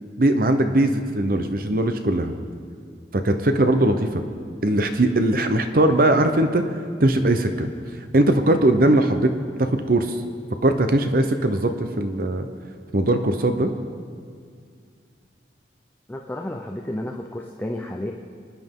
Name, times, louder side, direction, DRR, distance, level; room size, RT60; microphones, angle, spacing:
voice 1, 0.2-2.3 3.1-4.2 4.6-7.7 8.1-9.3 9.6-10.2 10.6-12.5 12.9-13.7, right 1 dB, 50° right, 7 dB, 0.7 m, -20 dB
voice 2, 16.1-18.1, left 1 dB, 10° left, 0 dB, 0.6 m, -31 dB
24.0 x 10.5 x 3.7 m, 2.2 s
head